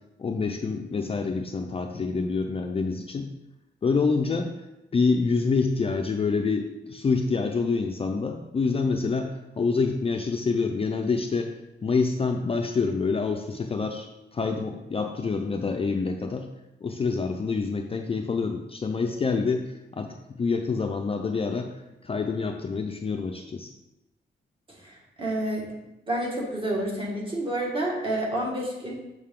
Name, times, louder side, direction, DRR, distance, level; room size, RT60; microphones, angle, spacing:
voice 1, 0.2-3.3 3.8-4.5 4.9-11.5 11.8-16.5 16.8-23.7, left 4 dB, 30° left, 4 dB, 0.4 m, -27 dB
voice 2, 24.8-25.7 26.1-28.9, right 1 dB, 25° right, -2 dB, 1.6 m, -29 dB
6.7 x 6.4 x 3.7 m, 0.96 s
wide cardioid pair, 170°, 19 cm